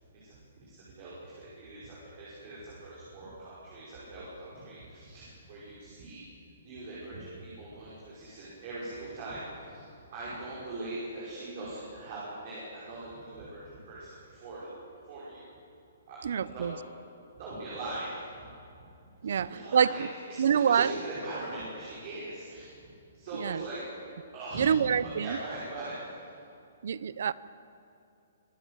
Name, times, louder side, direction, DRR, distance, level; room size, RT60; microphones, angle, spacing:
voice 1, 0.1-6.2 6.6-14.7 15.1-15.6 16.0-16.7 17.4-18.5 19.2-22.9 23.1-23.8 24.3-24.8 25.0-26.3, right 2 dB, 30° right, -8 dB, 5.8 m, -41 dB
voice 2, 16.2-16.7 19.2-20.1 20.4-20.9 23.4-23.6 24.6-25.4 26.8-27.3, right 7 dB, 55° right, 18 dB, 0.7 m, -26 dB
25.5 x 16.0 x 8.2 m, 2.6 s
hypercardioid pair, 175°, 0 cm